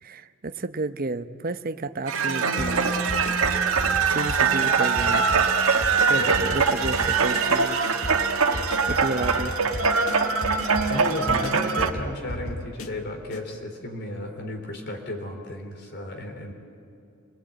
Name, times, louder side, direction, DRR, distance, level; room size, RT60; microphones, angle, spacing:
voice 1, 0.0-2.9 4.1-5.2 6.1-7.9 8.9-9.5, right 3 dB, 45° right, 10 dB, 0.8 m, -31 dB
sound 1, 2.1-11.9, right 5 dB, 80° right, 1.4 m, -23 dB
sound 2, 2.6-13.4, left 1 dB, 85° left, 1.5 m, -36 dB
voice 2, 10.9-16.5, left 1 dB, 50° left, 4 dB, 3.6 m, -33 dB
27.5 x 19.0 x 8.7 m, 2.6 s
head